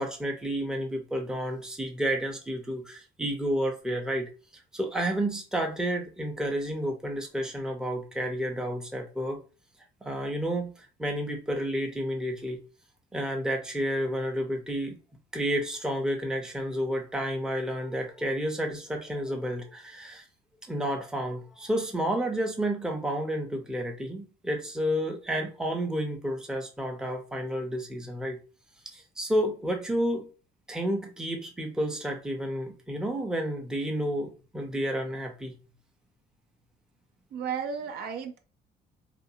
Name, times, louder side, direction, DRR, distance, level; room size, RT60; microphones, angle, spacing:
voice 1, 0.0-4.3 4.7-9.4 10.0-12.6 13.1-15.0 15.3-20.2 20.7-28.4 28.9-30.3 30.7-35.6, equal, 5° right, 0.6 m, -31 dB
voice 2, 37.3-38.4, right 7 dB, 70° right, 0.6 m, -33 dB
2.5 x 2.3 x 2.7 m
cardioid pair, 110°, 17 cm